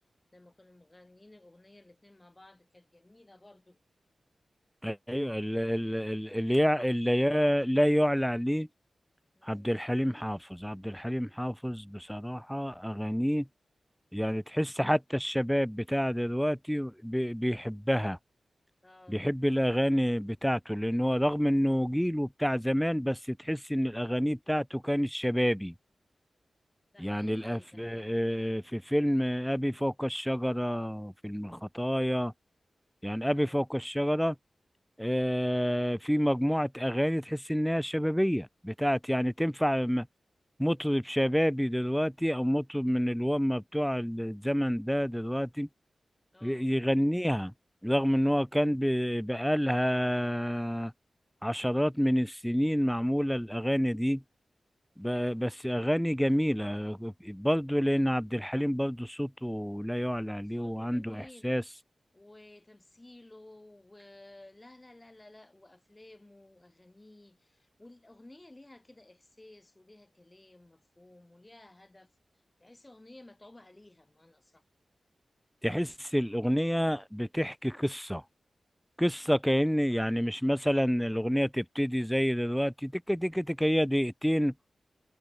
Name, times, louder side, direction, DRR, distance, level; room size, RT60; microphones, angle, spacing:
voice 1, 0.3-3.8 9.4-9.7 18.8-19.2 26.9-28.3 33.2-33.6 46.3-46.7 55.1-55.5 60.4-61.6 62.1-72.1 72.6-74.6, left 2 dB, 20° left, 6.9 m, -55 dB
voice 2, 4.8-8.7 9.4-13.5 14.1-18.2 19.1-25.7 27.0-32.3 33.0-34.4 35.0-40.1 40.6-45.7 46.4-47.5 47.8-50.9 51.4-54.2 55.0-61.6 75.6-78.2 79.0-84.5, equal, ahead, 0.4 m, -28 dB
wide cardioid pair, 85°, 0 cm